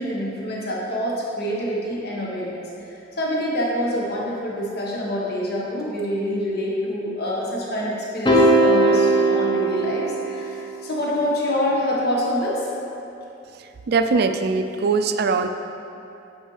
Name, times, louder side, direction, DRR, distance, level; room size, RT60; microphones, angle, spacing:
voice 1, 0.0-2.6 3.2-12.7, equal, 55° left, -4 dB, 1.2 m, -26 dB
sound 1, 8.3-10.7, right 2 dB, 25° left, 0.8 m, -18 dB
voice 2, 13.9-15.5, right 4 dB, 55° right, 7 dB, 0.4 m, -21 dB
8.8 x 5.0 x 3.2 m, 2.9 s
head